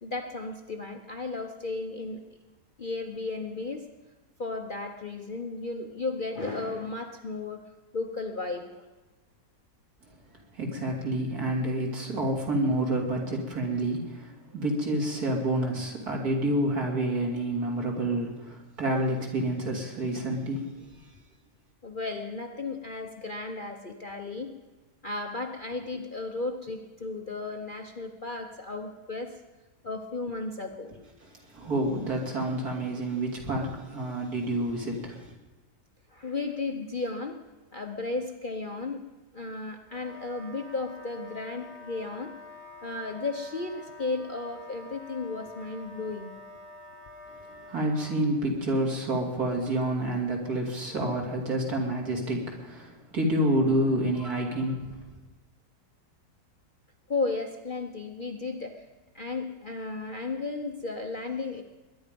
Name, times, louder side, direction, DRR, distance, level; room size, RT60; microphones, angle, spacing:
voice 1, 0.0-2.2 2.8-3.9 4.4-7.6 7.9-8.8 21.8-24.5 25.0-29.4 29.8-30.9 36.1-37.4 37.7-39.0 39.3-42.3 42.8-46.3 57.1-58.8 59.1-61.6, left 3 dB, 40° left, 3 dB, 0.9 m, -34 dB
voice 2, 10.5-20.7 31.2-35.3 47.6-54.9, right 1 dB, 65° right, 0 dB, 3.3 m, -28 dB
Wind instrument woodwind instrument, 39.9-48.2, left 3 dB, 85° right, 4.4 m, -47 dB
21.5 x 10.5 x 5.3 m, 1.2 s
omnidirectional pair, 1.8 m